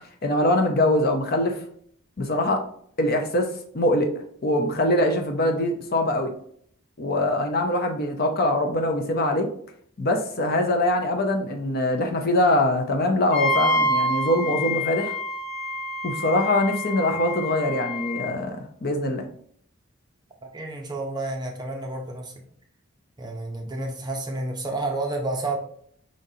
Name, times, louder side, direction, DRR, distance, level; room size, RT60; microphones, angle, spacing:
voice 1, 0.2-1.6 2.2-2.6 3.0-4.1 4.4-6.3 7.0-9.5 10.0-15.1 16.0-19.3, left 1 dB, 45° left, 4 dB, 0.6 m, -23 dB
Wind instrument woodwind instrument, 13.3-18.3, left 1 dB, 75° left, 2.0 m, -27 dB
voice 2, 20.4-22.3 23.2-25.6, right 2 dB, 20° right, 1 dB, 0.7 m, -30 dB
5.1 x 3.8 x 2.7 m, 0.62 s
head